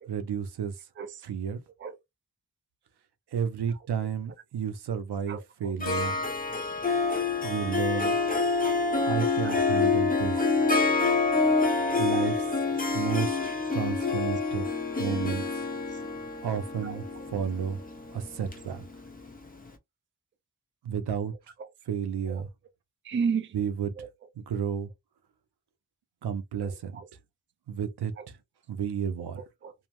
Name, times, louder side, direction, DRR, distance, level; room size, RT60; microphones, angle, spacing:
voice 1, 0.1-0.9 1.2-1.6 3.3-6.2 7.4-8.2 9.0-10.4 12.0-12.6 12.9-14.7 15.0-15.7 16.4-17.0 17.3-17.8 18.1-18.8 20.8-21.3 21.9-22.5 23.5-23.9 24.4-24.9 26.2-27.0 27.7-28.4 28.7-29.4, right 7 dB, 85° right, 0.6 m, -32 dB
voice 2, 5.3-6.1 7.9-8.1 9.4-9.9 10.3-10.7 14.2-14.3 14.9-15.1 15.9-16.0 16.8-17.0 21.6-21.7 22.3-22.5 23.0-23.6 24.0-24.3 26.6-27.1 28.2-28.3 29.4-29.7, right 6 dB, 30° right, 0.4 m, -36 dB
Harp, 5.8-19.4, left 4 dB, 25° left, 0.6 m, -27 dB
2.7 x 2.0 x 2.9 m
wide cardioid pair, 80°, 39 cm